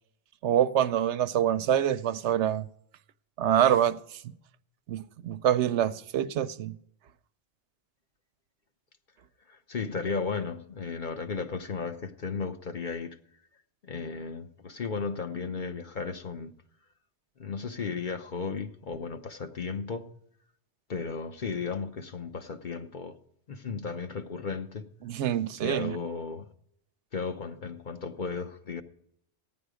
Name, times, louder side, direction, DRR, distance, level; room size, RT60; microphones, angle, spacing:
voice 1, 0.4-2.7 3.4-4.2 4.9-6.8 25.0-26.0, right 10 dB, 85° right, 0.9 m, -26 dB
voice 2, 9.5-13.2 13.8-16.5 17.4-20.1 20.9-23.2 23.5-24.9 25.6-26.5 27.1-28.8, left 4 dB, 50° left, 1.0 m, -35 dB
15.0 x 10.0 x 4.9 m
omnidirectional pair, 1.1 m